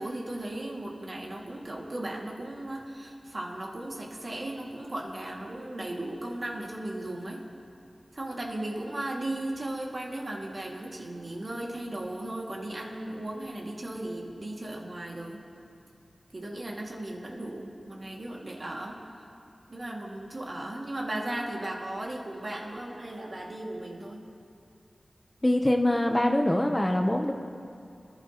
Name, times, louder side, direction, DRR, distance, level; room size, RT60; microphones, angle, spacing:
voice 1, 0.0-7.4 8.1-15.4 16.3-19.0 19.7-24.2, right 1 dB, 55° right, -2 dB, 2.2 m, -36 dB
voice 2, 25.4-27.3, left 1 dB, 20° left, 4 dB, 0.9 m, -24 dB
24.5 x 11.0 x 3.0 m, 2.6 s
wide cardioid pair, 55°, 0 cm